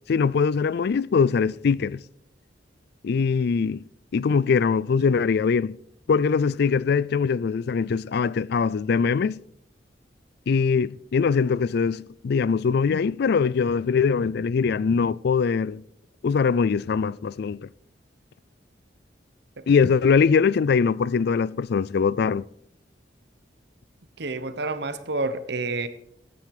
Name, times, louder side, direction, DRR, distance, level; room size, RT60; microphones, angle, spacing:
voice 1, 0.1-2.0 3.0-3.8 4.1-5.8 6.1-9.4 10.5-15.8 16.2-17.7 19.7-22.4, left 5 dB, 60° left, 0.4 m, -22 dB
voice 2, 24.2-25.9, right 3 dB, 65° right, 1.2 m, -29 dB
14.5 x 9.5 x 4.9 m
head